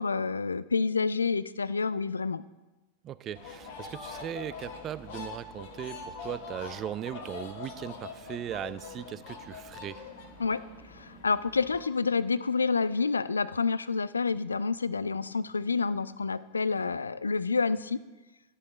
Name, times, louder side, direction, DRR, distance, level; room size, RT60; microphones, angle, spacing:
voice 1, 0.0-2.4 10.4-10.6 10.9-18.0, left 4 dB, 75° left, 17 dB, 0.3 m, -28 dB
voice 2, 3.0-10.0, right 11 dB, 30° right, 16 dB, 0.4 m, -38 dB
sound 1, 3.3-11.8, left 5 dB, 50° left, 1.6 m, -43 dB
12.5 x 6.5 x 4.9 m, 1.1 s
figure-of-eight pair, 90°, 0 cm